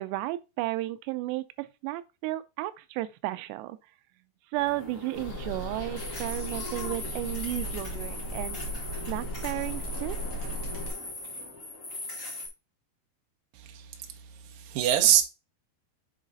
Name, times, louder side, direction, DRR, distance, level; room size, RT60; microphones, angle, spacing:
voice 1, 0.0-3.8 4.5-8.6 9.1-10.2, right 17 dB, 90° right, 2.7 m, -33 dB
sound 1, 4.5-12.5, left 2 dB, 25° left, 2.1 m, -40 dB
sound 2, 5.1-10.9, equal, 55° left, 1.7 m, -36 dB
voice 2, 13.6-14.1 14.4-15.2, right 11 dB, 70° right, 2.4 m, -24 dB
7.3 x 3.9 x 4.0 m
omnidirectional pair, 4.7 m